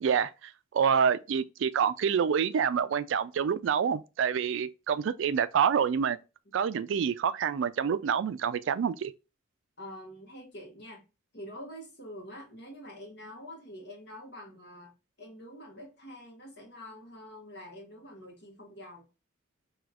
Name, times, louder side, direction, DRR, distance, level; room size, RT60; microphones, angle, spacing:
voice 1, 0.0-6.2 6.5-9.1, right 7 dB, 65° right, 0.3 m, -27 dB
voice 2, 9.8-11.0 11.3-19.0, equal, 55° left, 1.5 m, -46 dB
4.9 x 3.0 x 2.4 m
head